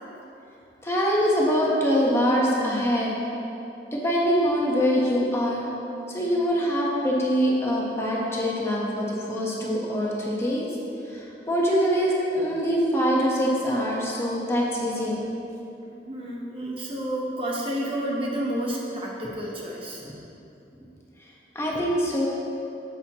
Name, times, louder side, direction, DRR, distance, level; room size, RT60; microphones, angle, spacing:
voice 1, 0.8-3.1 3.9-5.7 6.1-10.6 11.1-15.2 20.0-20.1 21.5-22.3, equal, 15° left, -4 dB, 1.2 m, -24 dB
voice 2, 15.8-20.0, right 1 dB, 30° right, -3 dB, 0.9 m, -30 dB
10.5 x 7.9 x 3.0 m, 2.9 s
head